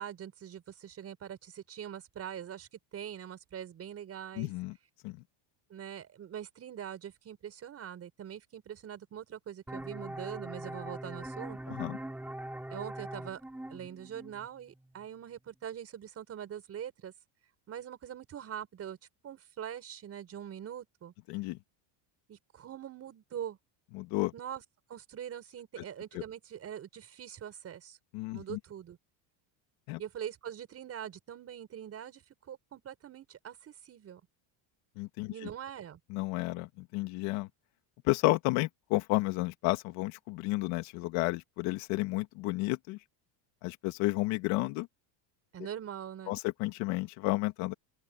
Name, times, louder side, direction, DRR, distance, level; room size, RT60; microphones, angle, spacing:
voice 1, 0.0-4.5 5.7-11.7 12.7-13.4 13.7-17.1 17.7-19.0 19.2-21.1 22.3-23.6 24.3-24.6 24.9-28.0 28.3-29.0 30.0-34.2 35.3-36.0 45.5-46.4, right 9 dB, 30° right, 6.4 m, -43 dB
voice 2, 4.4-4.7 5.0-5.2 11.7-12.0 21.3-21.6 23.9-24.3 26.1-26.2 28.1-28.6 29.9-30.0 35.0-35.3 36.1-37.5 38.0-43.0 43.6-44.9 46.3-47.7, left 20 dB, 65° left, 2.2 m, -31 dB
sound 1, 9.7-15.1, right 1 dB, 5° right, 3.7 m, -42 dB
open air
cardioid pair, 175°, 50 cm